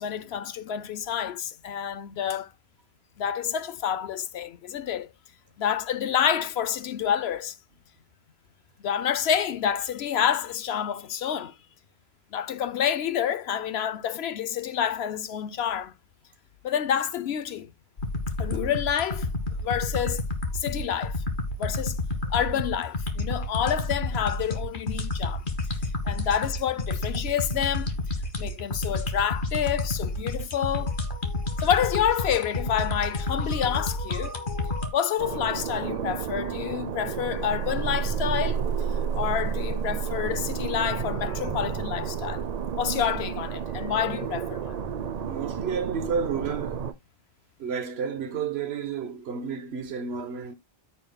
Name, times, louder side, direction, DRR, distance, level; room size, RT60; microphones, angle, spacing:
voice 1, 0.0-2.5 3.2-5.1 5.6-7.6 8.8-11.5 12.3-15.9 16.6-17.7 18.4-19.3 19.6-20.2 20.5-21.2 21.6-22.0 22.3-25.5 26.0-27.9 28.4-31.0 31.6-34.4 34.9-38.6 39.1-42.4 42.8-44.7, left 9 dB, 80° left, 0.9 m, -28 dB
sound 1, 18.0-34.9, left 2 dB, 55° left, 1.6 m, -30 dB
sound 2, 35.2-46.9, right 7 dB, 45° right, 0.7 m, -31 dB
voice 2, 45.2-46.9 47.6-50.5, right 6 dB, 85° right, 1.3 m, -31 dB
14.5 x 5.4 x 2.2 m
omnidirectional pair, 1.1 m